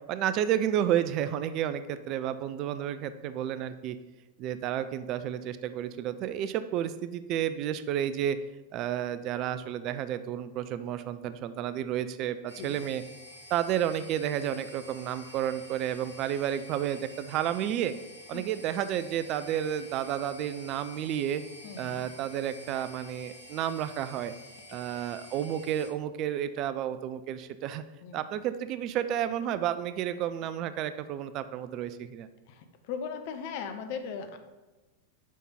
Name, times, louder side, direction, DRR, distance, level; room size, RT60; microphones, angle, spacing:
voice 1, 0.1-4.0 4.4-8.4 8.7-13.0 13.5-17.9 18.3-21.4 21.8-24.3 24.7-27.8 28.1-32.3, right 10 dB, 40° right, 12 dB, 0.3 m, -31 dB
sound 1, 12.5-25.9, left 1 dB, 70° right, 1.9 m, -49 dB
voice 2, 21.6-22.0 24.7-25.0 28.0-28.3 32.5-34.4, left 6 dB, 50° left, 7 dB, 0.7 m, -39 dB
6.3 x 5.2 x 4.3 m, 1.1 s
figure-of-eight pair, 90°, 0 cm